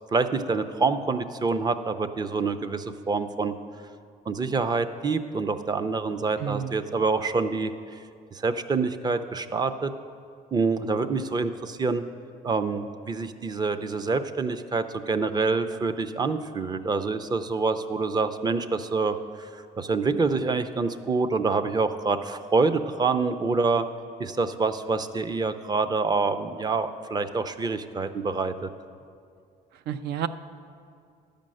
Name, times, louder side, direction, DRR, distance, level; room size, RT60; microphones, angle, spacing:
voice 1, 0.1-3.5 4.3-8.0 8.3-9.9 10.5-12.0 12.4-23.9 24.2-28.7, right 4 dB, 25° right, 10 dB, 0.5 m, -26 dB
voice 2, 6.4-6.7 29.9-30.3, right 9 dB, 75° right, 12 dB, 0.5 m, -30 dB
11.0 x 5.2 x 7.6 m, 2.3 s
cardioid pair, 110°, 17 cm